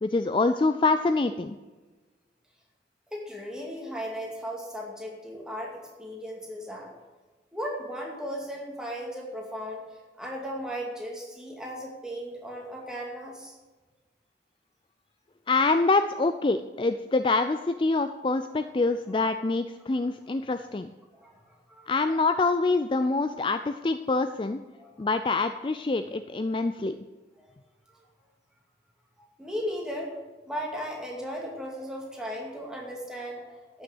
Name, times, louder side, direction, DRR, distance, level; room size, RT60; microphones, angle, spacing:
voice 1, 0.0-1.6 15.5-20.9 21.9-24.6 25.0-26.9, left 3 dB, 30° left, 9 dB, 0.4 m, -25 dB
voice 2, 3.1-6.9 7.5-13.5 20.0-20.1 21.2-22.2 24.8-25.1 27.4-27.5 29.2-30.1 30.5-33.8, equal, 5° right, -2 dB, 2.3 m, -36 dB
11.5 x 6.8 x 7.9 m, 1.3 s
head